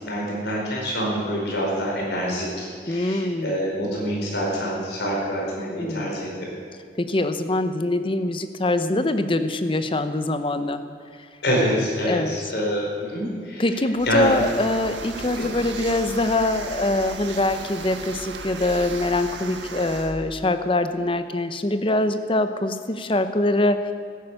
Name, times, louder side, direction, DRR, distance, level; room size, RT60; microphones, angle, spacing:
voice 1, 0.0-6.5 11.4-13.6 14.1-14.3 15.4-15.5, equal, 65° left, -3 dB, 4.7 m, -26 dB
voice 2, 2.9-3.6 5.8-6.2 7.0-10.8 12.0-12.4 13.6-23.9, left 2 dB, 30° left, 10 dB, 0.7 m, -23 dB
sound 1, 14.0-20.1, right 4 dB, 80° right, 1.4 m, -36 dB
14.0 x 11.0 x 8.1 m, 2.2 s
head